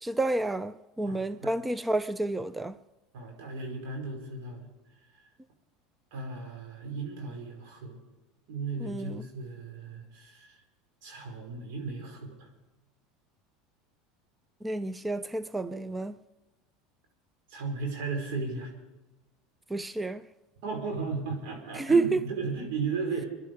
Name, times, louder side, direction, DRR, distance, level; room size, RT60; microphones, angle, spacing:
voice 1, 0.0-2.8 8.8-9.2 14.6-16.2 19.7-20.2 21.8-22.2, right 2 dB, 10° right, 0.5 m, -29 dB
voice 2, 1.1-1.5 3.1-4.7 5.1-5.2 6.1-8.0 8.5-10.6 11.0-12.5 17.5-18.7 20.6-23.3, right 4 dB, 70° right, 5.4 m, -36 dB
25.5 x 11.0 x 4.8 m
supercardioid pair, 105°, 0 cm